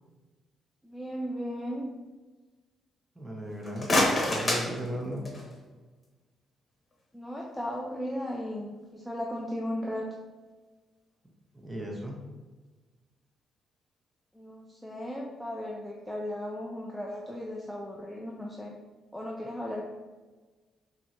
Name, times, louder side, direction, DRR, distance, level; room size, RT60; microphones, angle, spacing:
voice 1, 0.8-1.9 7.1-10.1 14.3-18.8 19.1-19.8, equal, ahead, -3 dB, 0.5 m, -36 dB
voice 2, 3.2-3.9 4.2-5.2 11.6-12.2, equal, 15° right, -1 dB, 1.0 m, -36 dB
sound 1, 3.5-5.6, left 1 dB, 30° left, 1.1 m, -28 dB
5.3 x 2.9 x 2.8 m, 1.3 s
cardioid pair, 90°, 0 cm